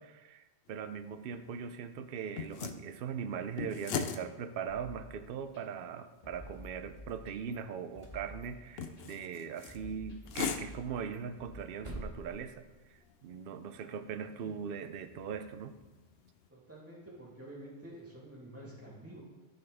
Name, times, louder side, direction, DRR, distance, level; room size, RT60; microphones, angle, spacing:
voice 1, 0.0-15.7, right 7 dB, 60° right, 10 dB, 0.7 m, -40 dB
sound 1, 0.7-16.5, left 6 dB, 65° left, 0.8 m, -44 dB
sound 2, 4.7-5.6 6.2-7.6 7.9-9.0 9.7-11.5, left 1 dB, 35° left, 2.5 m, -51 dB
sound 3, 6.4-7.6 7.9-9.0 9.3-9.4 9.8-9.9 10.2-10.3 10.7-13.3, right 1 dB, 30° right, 1.4 m, -49 dB
voice 2, 16.5-19.2, right 1 dB, 10° right, -6 dB, 2.6 m, -49 dB
13.5 x 5.5 x 3.5 m, 1.2 s
omnidirectional pair, 1.1 m